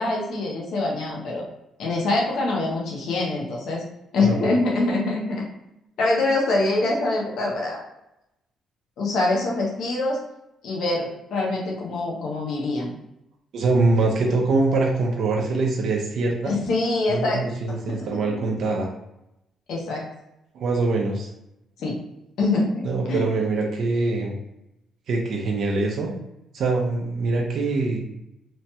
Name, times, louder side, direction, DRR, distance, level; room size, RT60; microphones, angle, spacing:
voice 1, 0.0-1.4 1.8-3.8 4.1-5.4 6.0-7.8 9.0-10.2 10.6-12.9 16.4-17.4 17.7-18.4 19.7-20.0 21.8-21.9 22.4-23.3, left 2 dB, 75° left, -2 dB, 0.8 m, -24 dB
voice 2, 13.5-16.6 17.1-18.9 20.5-21.3 22.8-24.4 25.1-26.1 26.5-28.0, right 3 dB, 70° right, 0 dB, 0.5 m, -23 dB
3.1 x 2.1 x 2.8 m, 0.86 s
cardioid pair, 90°, 0 cm